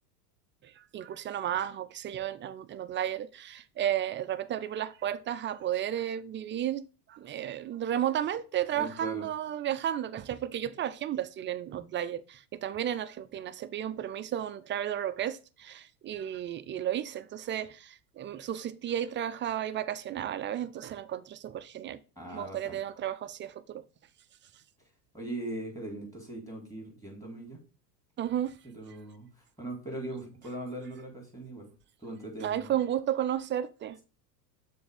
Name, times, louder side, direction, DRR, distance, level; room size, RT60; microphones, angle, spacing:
voice 1, 0.6-22.0 22.3-23.8 28.2-28.6 32.4-34.0, right 10 dB, 25° right, 0.4 m, -33 dB
voice 2, 8.7-9.3 22.2-22.8 25.1-27.6 28.6-31.7 32.0-32.7, right 1 dB, 5° left, 3.7 m, -40 dB
6.9 x 3.5 x 5.1 m
hypercardioid pair, 90°, 48 cm